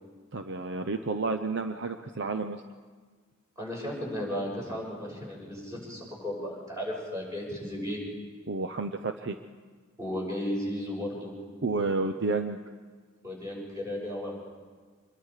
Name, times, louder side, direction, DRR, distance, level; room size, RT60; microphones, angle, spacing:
voice 1, 0.3-2.6 8.5-9.4 11.6-12.6, right 3 dB, 55° right, 6 dB, 0.7 m, -30 dB
voice 2, 3.6-8.0 10.0-11.3 13.2-14.3, left 1 dB, 15° right, -3 dB, 6.4 m, -34 dB
26.0 x 21.5 x 4.9 m, 1.5 s
head